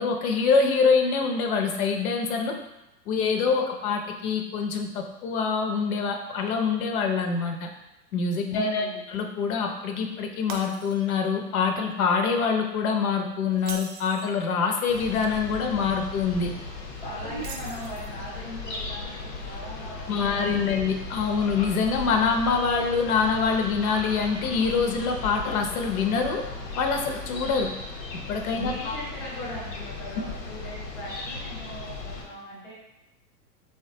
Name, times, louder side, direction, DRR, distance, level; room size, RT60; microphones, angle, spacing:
voice 1, 0.0-2.5 3.1-7.7 8.1-16.5 17.2-17.4 20.1-26.4 26.8-27.7 28.1-29.0, left 5 dB, 60° left, 4 dB, 0.6 m, -25 dB
voice 2, 8.5-9.0 17.0-20.7 28.5-32.8, left 1 dB, 10° left, -7 dB, 0.5 m, -39 dB
Shatter, 10.5-11.3 11.7-11.9 13.5-14.4 17.4-18.3, right 5 dB, 60° right, 0.5 m, -41 dB
sound 1, 14.9-32.2, left 3 dB, 85° left, 0.9 m, -37 dB
3.4 x 2.2 x 2.7 m, 0.94 s
hypercardioid pair, 140°, 49 cm